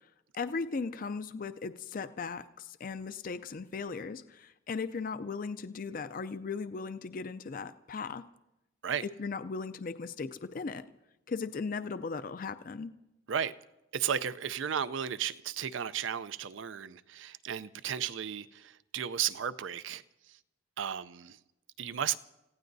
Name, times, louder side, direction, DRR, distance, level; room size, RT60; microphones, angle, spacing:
voice 1, 0.3-8.2 9.2-10.8 11.3-12.9, left 4 dB, 45° left, 0.4 m, -37 dB
voice 2, 13.9-20.0 20.8-21.4 21.8-22.2, right 8 dB, 70° right, 0.5 m, -34 dB
29.5 x 16.0 x 2.7 m
head